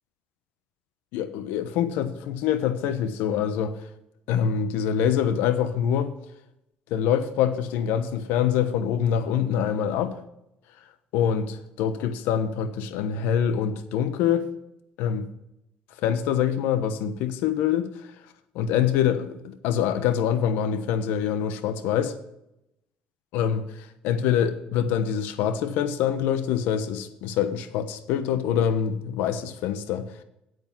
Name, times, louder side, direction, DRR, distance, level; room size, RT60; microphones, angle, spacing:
voice 1, 1.1-3.7 4.3-6.1 6.9-10.1 11.1-14.5 15.0-15.3 16.0-17.9 18.5-22.1 23.3-23.6 24.0-30.0, left 9 dB, 80° left, 11 dB, 1.0 m, -25 dB
9.3 x 8.2 x 5.7 m, 0.83 s
supercardioid pair, 80°, 3 cm